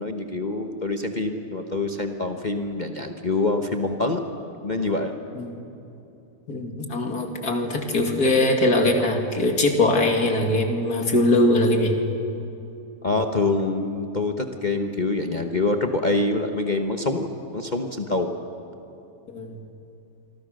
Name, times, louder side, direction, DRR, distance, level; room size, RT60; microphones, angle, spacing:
voice 1, 0.0-4.2 4.6-5.1 13.0-18.3, left 2 dB, 30° left, 4 dB, 1.2 m, -25 dB
voice 2, 6.5-11.9 19.3-19.6, left 1 dB, 60° left, 3 dB, 3.0 m, -21 dB
28.0 x 24.0 x 6.6 m, 2.8 s
omnidirectional pair, 1.8 m